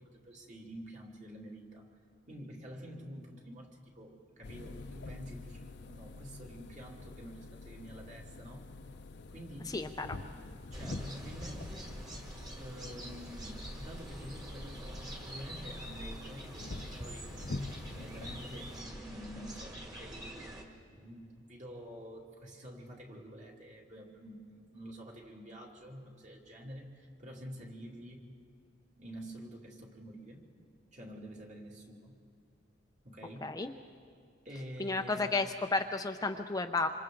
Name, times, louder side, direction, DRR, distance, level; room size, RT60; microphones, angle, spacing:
voice 1, 0.0-1.9 2.3-8.7 9.3-11.9 12.6-17.5 17.9-28.2 29.0-30.4 30.9-32.2 33.0-33.6 34.4-35.4, equal, 40° right, -1 dB, 2.6 m, -48 dB
sound 1, 4.4-18.8, left 2 dB, 60° left, 0.7 m, -46 dB
voice 2, 9.7-10.1 33.4-33.7 34.8-36.9, left 3 dB, 20° left, 5 dB, 0.6 m, -32 dB
sound 2, 10.7-20.6, equal, 20° right, 2.0 m, -45 dB
26.5 x 26.5 x 3.8 m, 2.3 s
head